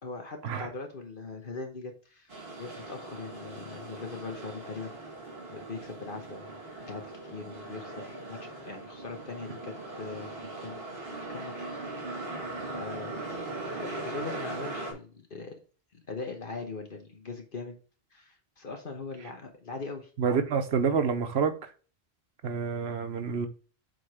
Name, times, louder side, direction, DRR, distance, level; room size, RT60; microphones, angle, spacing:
voice 1, 0.0-2.3 2.6-5.2 5.5-6.6 6.9-10.8 11.1-11.7 12.7-13.2 13.7-15.6 15.9-17.8 18.1-20.1, left 4 dB, 55° left, 1.3 m, -41 dB
sound 1, 2.3-14.9, right 2 dB, 65° right, 2.1 m, -40 dB
voice 2, 20.2-21.6 22.4-23.5, right 6 dB, 80° right, 1.1 m, -28 dB
7.9 x 3.8 x 3.6 m
omnidirectional pair, 1.1 m